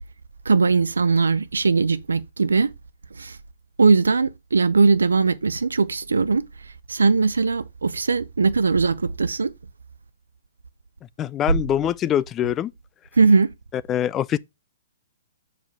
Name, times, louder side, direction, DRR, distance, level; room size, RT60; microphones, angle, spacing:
voice 1, 0.5-2.7 3.2-3.4 3.8-6.4 6.9-9.5 13.2-13.5, right 4 dB, 90° right, 0.6 m, -19 dB
voice 2, 11.2-12.7 13.9-14.4, left 10 dB, 25° left, 0.3 m, -23 dB
5.6 x 5.0 x 4.6 m
hypercardioid pair, 130°, 0 cm